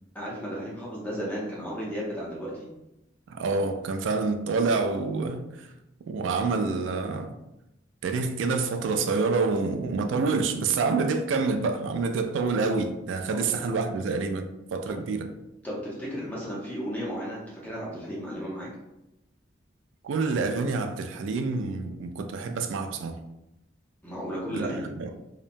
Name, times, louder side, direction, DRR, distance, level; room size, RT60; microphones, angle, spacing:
voice 1, 0.1-2.7 13.3-13.4 15.6-18.7 24.0-24.9, equal, 10° left, 0.5 m, -34 dB
voice 2, 3.3-5.7 6.1-7.3 8.0-15.3 20.0-23.2 24.5-25.1, right 4 dB, 85° right, 0.3 m, -27 dB
2.8 x 2.1 x 2.5 m
head